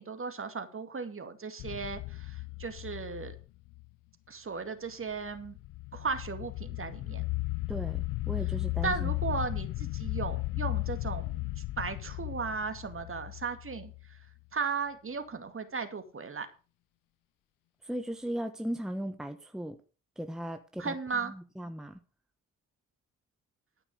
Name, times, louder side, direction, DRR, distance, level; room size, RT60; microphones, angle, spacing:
voice 1, 0.0-3.4 4.3-5.6 5.9-7.2 8.8-14.3 14.5-16.5 20.8-21.3, right 5 dB, 35° right, 2.2 m, -36 dB
sound 1, 1.6-3.9 5.2-14.1, left 20 dB, 60° left, 0.5 m, -35 dB
voice 2, 7.7-9.1 17.8-19.8 20.2-20.9 21.2-22.0, equal, ahead, 1.4 m, -37 dB
13.5 x 5.9 x 6.6 m
hypercardioid pair, 50°, 36 cm